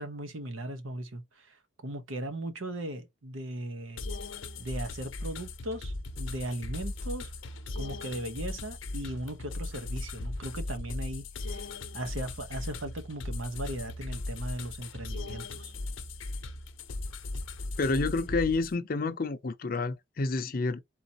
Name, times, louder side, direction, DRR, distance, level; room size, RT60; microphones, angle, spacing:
voice 1, 0.0-4.0 4.6-7.3 7.7-15.7, right 1 dB, 85° right, 1.1 m, -38 dB
sound 1, 4.0-18.8, left 2 dB, 80° left, 0.7 m, -38 dB
voice 2, 17.8-20.8, left 3 dB, 45° left, 0.5 m, -29 dB
4.2 x 3.9 x 2.8 m
head